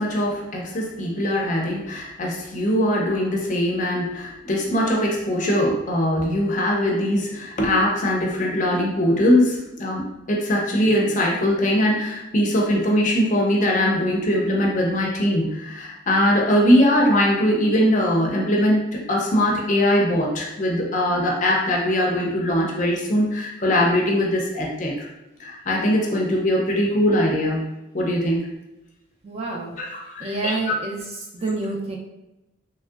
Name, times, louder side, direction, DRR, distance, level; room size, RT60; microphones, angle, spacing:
voice 1, 0.0-24.9 25.4-27.6 27.9-28.5 29.8-30.7, left 1 dB, 40° left, 0 dB, 0.5 m, -21 dB
voice 2, 29.2-29.8 30.2-31.0 31.3-32.0, right 3 dB, 30° right, -1 dB, 0.4 m, -28 dB
3.1 x 2.6 x 2.3 m, 0.94 s
head